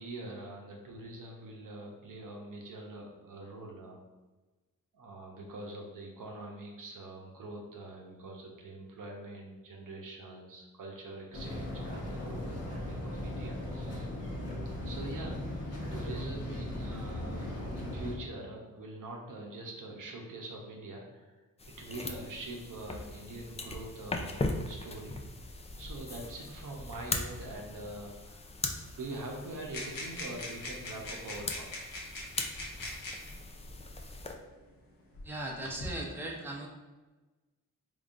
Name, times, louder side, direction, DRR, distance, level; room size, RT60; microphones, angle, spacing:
voice 1, 0.0-4.0 4.9-14.1 14.8-21.4 21.8-25.2 25.8-28.5 28.9-31.7, right 2 dB, 65° right, 0 dB, 0.8 m, -44 dB
sound 1, 11.3-18.1, left 1 dB, 45° left, 1.1 m, -38 dB
sound 2, 21.6-34.3, left 2 dB, 20° left, 0.4 m, -40 dB
sound 3, 29.7-33.3 34.3-34.4 35.1-35.9, left 1 dB, 75° left, 0.9 m, -41 dB
voice 2, 35.2-36.7, right 1 dB, 5° right, -2 dB, 0.7 m, -38 dB
3.6 x 3.3 x 2.5 m, 1.2 s
cardioid pair, 60°, 34 cm